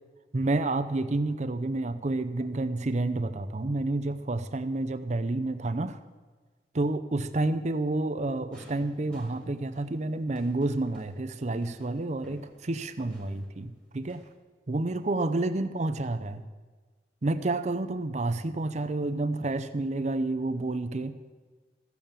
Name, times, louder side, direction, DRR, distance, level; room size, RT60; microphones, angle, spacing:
voice 1, 0.3-6.0 6.7-14.2 14.7-16.5 17.2-21.1, right 2 dB, 40° right, 10 dB, 0.6 m, -29 dB
sound 1, 8.5-14.4, right 1 dB, 5° left, 2.0 m, -54 dB
14.5 x 7.1 x 7.4 m, 1.4 s
head